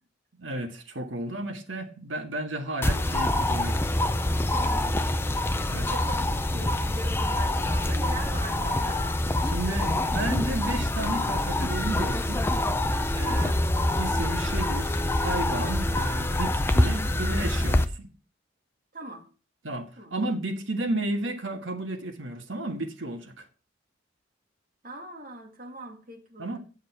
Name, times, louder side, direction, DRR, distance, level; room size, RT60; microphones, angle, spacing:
voice 1, 0.4-3.8 5.7-5.9 9.4-12.4 13.1-13.5 14.0-18.1 19.6-23.5 26.4-26.6, right 1 dB, 85° right, 1.5 m, -33 dB
Pine forest bird calls Eastern Cape, 2.8-17.8, left 1 dB, 10° left, 0.5 m, -26 dB
voice 2, 4.5-5.3 5.6-9.1 13.2-13.6 18.9-19.3 20.0-20.2 24.8-26.6, right 1 dB, 45° right, 2.1 m, -41 dB
9.8 x 6.5 x 4.5 m
head